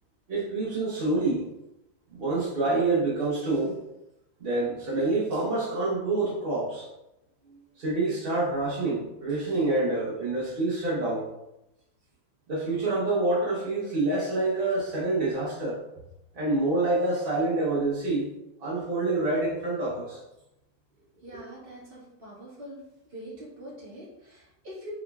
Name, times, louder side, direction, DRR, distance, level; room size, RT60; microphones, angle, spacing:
voice 1, 0.3-1.5 2.1-3.8 4.4-6.9 7.8-11.3 12.5-15.8 16.3-18.3 18.6-20.2, right 2 dB, 60° right, -7 dB, 0.6 m, -27 dB
voice 2, 21.2-22.8 23.1-24.9, right 1 dB, 30° right, -7 dB, 1.3 m, -44 dB
3.9 x 3.7 x 2.3 m, 0.91 s
omnidirectional pair, 2.3 m